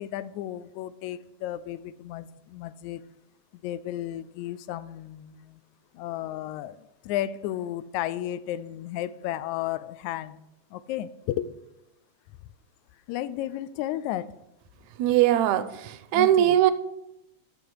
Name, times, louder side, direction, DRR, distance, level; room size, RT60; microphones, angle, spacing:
voice 1, 0.0-3.0 3.5-5.6 5.9-10.4 10.7-11.5 13.1-14.3 16.1-16.6, left 12 dB, 80° left, 16 dB, 1.9 m, -33 dB
voice 2, 15.0-16.7, right 12 dB, 80° right, 12 dB, 1.9 m, -21 dB
13.0 x 6.7 x 4.7 m, 0.86 s
omnidirectional pair, 3.4 m